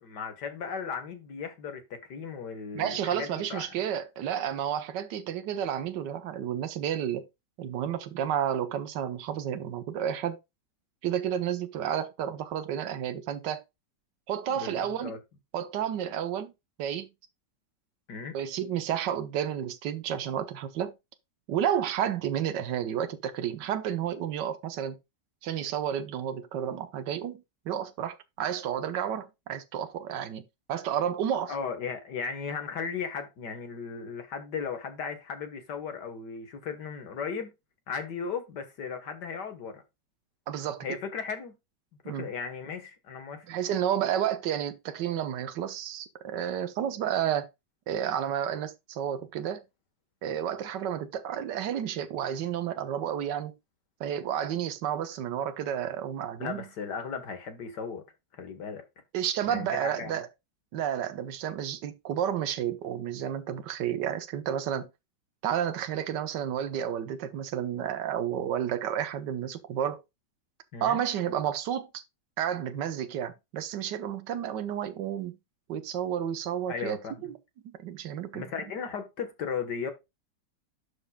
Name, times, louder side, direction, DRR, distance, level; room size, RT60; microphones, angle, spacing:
voice 1, 0.0-3.7 14.6-15.2 18.1-18.4 31.5-37.5 37.9-39.8 40.8-41.5 42.0-43.5 56.4-58.0 58.3-58.8 59.4-60.2 70.7-71.0 76.7-77.2 78.3-79.9, left 6 dB, 70° left, 1.9 m, -36 dB
voice 2, 2.7-7.3 7.6-10.4 11.0-13.6 14.3-15.1 15.5-16.5 16.8-17.1 18.3-20.9 21.5-25.0 25.4-30.4 30.7-31.5 40.5-40.8 42.0-42.3 43.5-47.5 47.9-49.6 50.2-53.5 54.0-56.6 59.1-60.3 60.7-64.9 65.4-70.0 70.8-72.0 72.4-75.4 75.7-77.4 77.8-78.4, right 9 dB, 80° right, 1.5 m, -31 dB
11.5 x 5.3 x 2.2 m
omnidirectional pair, 1.9 m